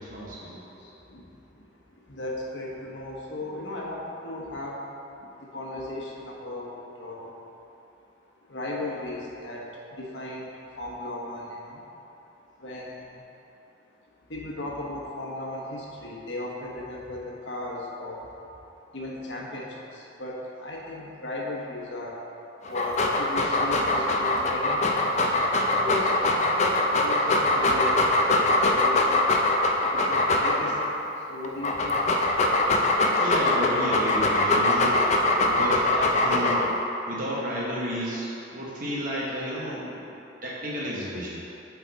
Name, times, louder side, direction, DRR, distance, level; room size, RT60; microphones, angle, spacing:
voice 1, 0.0-0.6 33.2-35.0 35.4-36.7 37.1-41.4, equal, 45° right, -6 dB, 1.1 m, -32 dB
voice 2, 0.6-4.8 5.2-7.3 8.5-11.9 12.6-13.2 14.3-18.3 18.9-22.2 22.6-25.1 25.7-26.7 27.0-29.3 29.9-32.0, left 1 dB, 75° left, -3 dB, 1.1 m, -36 dB
Dog, 22.6-30.9 31.4-36.8, left 2 dB, 35° left, 0.5 m, -23 dB
8.2 x 4.6 x 4.0 m, 2.9 s
head